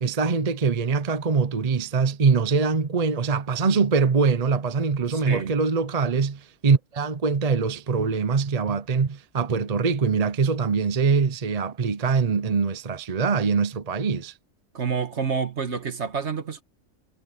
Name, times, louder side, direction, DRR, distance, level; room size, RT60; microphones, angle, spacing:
voice 1, 0.0-14.3, right 5 dB, 35° right, 0.8 m, -23 dB
voice 2, 5.1-5.5 14.7-16.6, right 6 dB, 60° right, 1.8 m, -28 dB
omnidirectional pair, 1.3 m